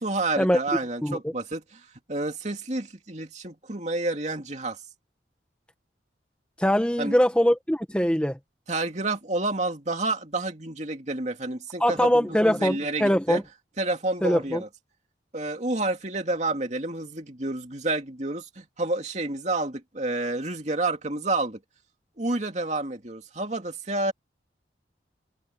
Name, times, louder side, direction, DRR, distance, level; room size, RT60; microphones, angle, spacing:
voice 1, 0.0-4.8 7.0-7.2 8.7-13.4 13.8-14.7 15.3-21.6 22.2-24.1, right 2 dB, 40° right, 2.6 m, -29 dB
voice 2, 1.0-1.3 6.6-8.4 11.8-13.4 14.2-14.6, equal, 5° left, 1.4 m, -22 dB
head